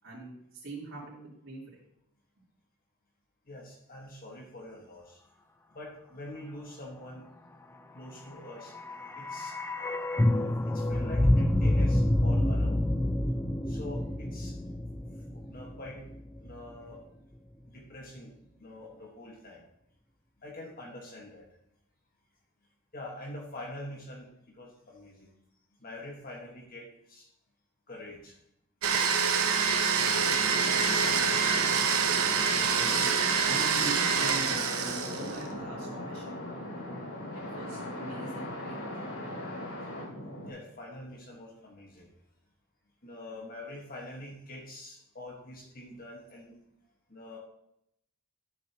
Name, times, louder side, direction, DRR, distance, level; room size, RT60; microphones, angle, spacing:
voice 1, 0.0-1.7 32.7-36.4 37.1-38.8, right 2 dB, 65° right, -11 dB, 3.2 m, -42 dB
voice 2, 3.5-5.2 5.7-7.2 7.9-8.7 9.1-9.6 10.3-12.8 13.7-14.6 15.3-16.0 16.4-17.0 17.7-18.3 18.6-19.7 20.4-21.5 22.9-24.3 24.6-25.3 25.8-27.3 27.9-28.4 40.5-42.1 43.0-46.6 47.1-47.4, left 1 dB, 45° left, -2 dB, 1.5 m, -45 dB
sound 1, 8.5-16.6 16.9-17.0, left 1 dB, 10° left, 0.4 m, -28 dB
Domestic sounds home sounds, 28.8-35.5, right 6 dB, 85° right, 1.0 m, -26 dB
sound 2, 29.9-40.5, left 1 dB, 80° left, 3.3 m, -39 dB
13.5 x 6.6 x 2.9 m, 0.77 s
head